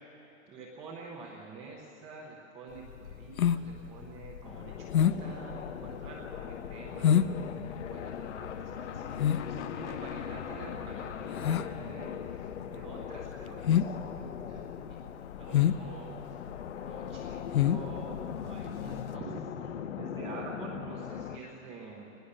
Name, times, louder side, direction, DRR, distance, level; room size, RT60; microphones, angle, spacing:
voice 1, 0.5-7.3 7.7-12.2 12.7-15.0 15.3-16.4 16.8-22.1, right 4 dB, 5° right, -5 dB, 0.5 m, -47 dB
sound 1, 2.8-19.1, left 9 dB, 85° left, 0.9 m, -30 dB
sound 2, 4.4-21.4, left 8 dB, 55° left, 1.1 m, -40 dB
24.0 x 20.0 x 6.5 m, 2.9 s
hypercardioid pair, 170°, 41 cm